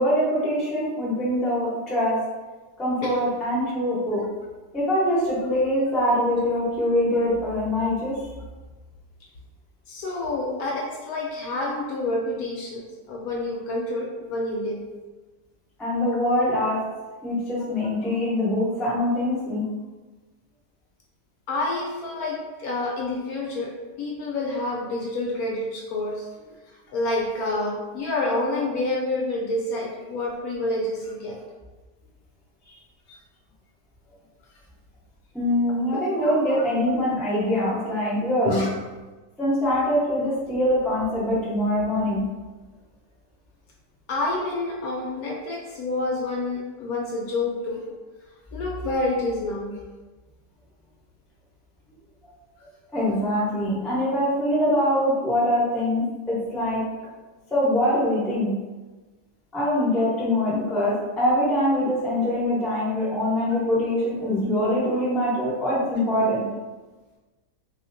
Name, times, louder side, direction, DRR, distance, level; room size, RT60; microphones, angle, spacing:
voice 1, 0.0-2.2 2.8-4.2 4.7-8.3 15.8-16.8 17.2-19.6 32.6-32.7 35.3-38.6 39.4-42.2 52.9-56.8 57.5-58.5 59.5-66.5, left 1 dB, ahead, -8 dB, 0.5 m, -23 dB
voice 2, 9.9-14.8 21.5-23.7 24.0-26.3 26.9-31.4 33.1-33.2 36.2-36.6 38.4-38.7 44.1-47.8 48.5-49.8, left 2 dB, 70° left, -2 dB, 1.0 m, -28 dB
3.4 x 2.8 x 2.5 m, 1.2 s
omnidirectional pair, 1.8 m